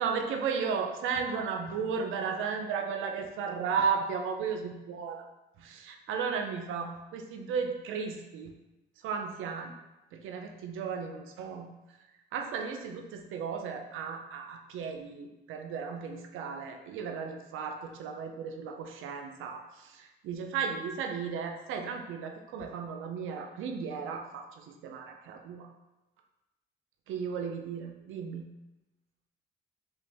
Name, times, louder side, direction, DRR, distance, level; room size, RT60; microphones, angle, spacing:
voice 1, 0.0-5.3 5.6-8.5 9.0-9.7 10.1-12.0 12.3-25.7 27.1-28.6, right 6 dB, 90° right, 3 dB, 0.6 m, -35 dB
5.2 x 2.6 x 3.4 m, 1.0 s
cardioid pair, 90°, 20 cm